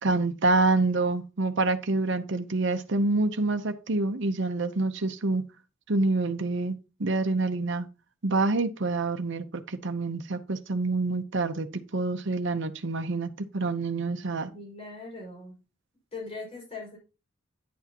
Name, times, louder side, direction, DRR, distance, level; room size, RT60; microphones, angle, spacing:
voice 1, 0.0-5.4 5.9-6.7 7.0-7.9 8.2-14.5, right 3 dB, 65° right, 0.8 m, -27 dB
voice 2, 14.5-15.6 16.1-17.0, left 3 dB, 30° left, 5.5 m, -40 dB
10.5 x 8.2 x 2.9 m
head